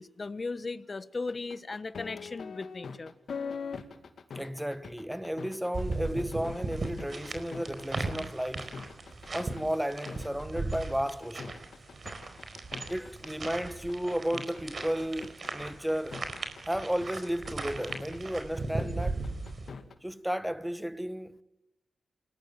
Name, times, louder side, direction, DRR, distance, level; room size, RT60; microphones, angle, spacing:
voice 1, 0.0-3.1, left 3 dB, 45° left, 1.3 m, -37 dB
sound 1, 1.3-19.9, left 5 dB, 75° left, 2.3 m, -43 dB
voice 2, 4.3-8.8 9.3-11.6 12.9-16.2 16.7-19.2 20.0-21.4, equal, 5° right, 1.3 m, -33 dB
sound 2, 5.7-19.7, right 3 dB, 55° right, 4.4 m, -38 dB
29.5 x 20.5 x 7.5 m
cardioid pair, 55°, 0 cm